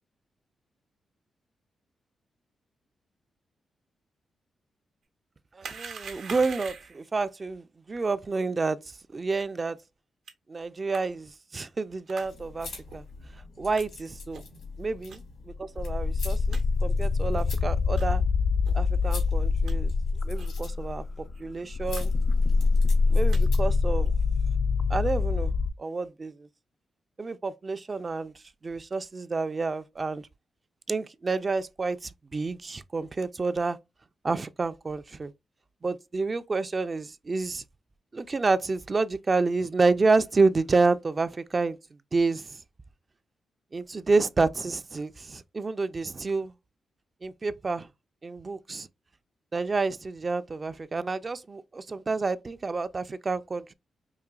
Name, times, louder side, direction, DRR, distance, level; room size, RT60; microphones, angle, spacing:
voice 1, 5.5-8.8 9.1-9.8 10.5-13.0 13.6-14.4 14.8-15.2 15.6-18.2 18.7-19.9 20.2-21.0 21.4-22.1 23.1-24.1 24.9-25.5 25.8-26.5 27.2-28.3 28.6-30.2 30.9-33.8 34.2-35.3 35.8-37.6 38.1-41.8 42.1-42.6 43.7-46.5 47.2-47.9 48.2-48.9 49.5-53.7, right 3 dB, 40° right, 0.4 m, -29 dB
sound 1, 5.6-7.0 10.3-10.4 10.9-11.0 12.1-12.3 12.9-13.0 13.7-13.8 14.3-14.6 15.1-15.2 15.8-15.9 16.1-16.2 16.5-16.6 17.2-17.3 17.9-18.1 18.6-18.8 19.2-19.7 20.4-20.6 20.8-20.9 21.2-21.4 21.9-22.0 22.3-22.7 23.1-23.4 24.0-24.3, right 5 dB, 80° right, 0.8 m, -43 dB
sound 2, 12.2-23.8, left 4 dB, 85° left, 1.6 m, -45 dB
sound 3, 15.8-21.3 21.7-25.7, left 4 dB, 60° left, 0.3 m, -25 dB
4.8 x 2.7 x 2.3 m
cardioid pair, 55°, 0 cm